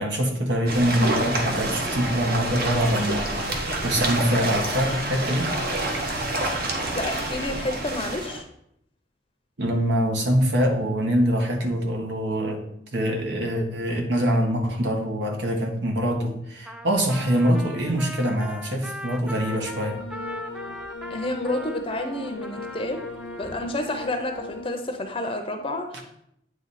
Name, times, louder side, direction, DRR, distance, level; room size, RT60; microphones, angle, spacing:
voice 1, 0.0-3.4 3.8-5.6 9.6-12.6 12.9-20.0, equal, 80° right, 3 dB, 1.2 m, -24 dB
sound 1, 0.7-8.4, right 1 dB, 60° right, 1.1 m, -27 dB
voice 2, 6.9-8.5 21.1-23.1 23.4-26.3, left 1 dB, 30° left, 5 dB, 0.6 m, -30 dB
Trumpet, 16.7-23.8, equal, 5° right, 0.4 m, -40 dB
sound 2, 19.5-24.7, left 3 dB, 75° left, 0.8 m, -38 dB
9.0 x 3.3 x 4.1 m, 0.73 s
head